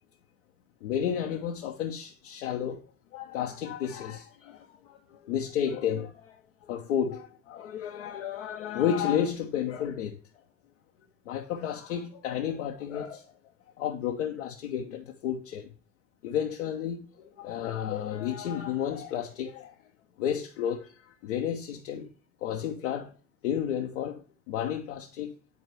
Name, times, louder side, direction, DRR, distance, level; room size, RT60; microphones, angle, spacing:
voice 1, 0.8-2.8 3.1-10.2 11.3-13.3 13.8-15.7 16.2-19.8 20.2-22.1 22.4-23.1 23.4-25.3, left 9 dB, 90° left, 0.5 m, -32 dB
9.2 x 4.2 x 3.0 m
hypercardioid pair, 45°, 36 cm